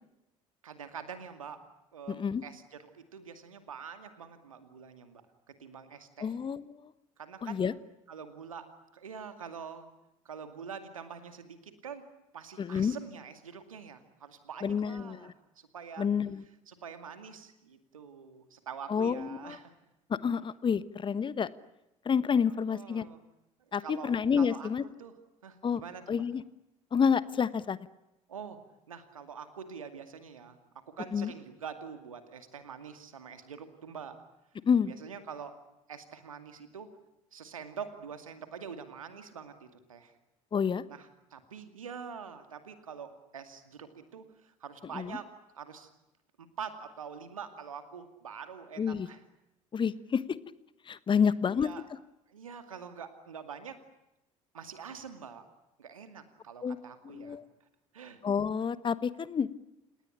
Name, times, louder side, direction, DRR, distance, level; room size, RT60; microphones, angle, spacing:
voice 1, 0.6-1.6 1.9-5.2 5.5-6.4 7.2-7.6 8.1-8.7 8.9-9.9 10.2-12.0 12.3-16.1 16.7-19.7 22.5-23.2 23.8-24.7 25.0-25.1 25.4-26.2 28.3-28.6 28.9-30.6 30.9-34.2 34.9-35.6 35.9-36.9 37.3-40.1 40.9-45.3 45.5-45.9 46.4-49.2 51.5-51.9 52.3-53.8 54.5-55.5 55.8-57.4 57.9-58.2, right 6 dB, 75° right, 9 dB, 2.4 m, -45 dB
voice 2, 2.1-2.4 6.2-6.9 7.4-7.7 12.6-12.9 14.6-15.3 16.0-16.4 18.9-19.6 20.1-21.5 22.0-23.0 23.7-24.8 25.6-25.8 26.1-26.4 26.9-27.8 31.1-31.3 34.7-34.9 40.5-40.8 44.9-45.2 48.8-49.1 49.7-50.2 50.9-51.7 56.6-56.8 57.1-57.4 58.2-59.5, left 6 dB, 30° left, 17 dB, 1.2 m, -29 dB
29.5 x 19.0 x 10.0 m, 0.92 s
figure-of-eight pair, 60°, 17 cm